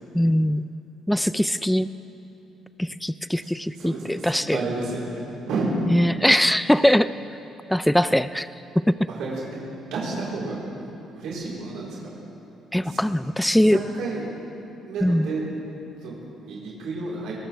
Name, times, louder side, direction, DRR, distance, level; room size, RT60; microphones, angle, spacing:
voice 1, 0.1-0.6 1.1-1.9 2.8-4.6 5.9-7.1 7.7-8.5 12.7-13.8 15.0-15.3, equal, 5° left, 13 dB, 0.3 m, -21 dB
voice 2, 3.4-5.7 9.1-9.4 9.9-12.2 12.8-13.0 13.6-14.2 14.9-15.4 16.0-17.3, right 3 dB, 80° right, -5 dB, 4.0 m, -31 dB
22.5 x 18.5 x 3.4 m, 2.8 s
cardioid pair, 115°, 0 cm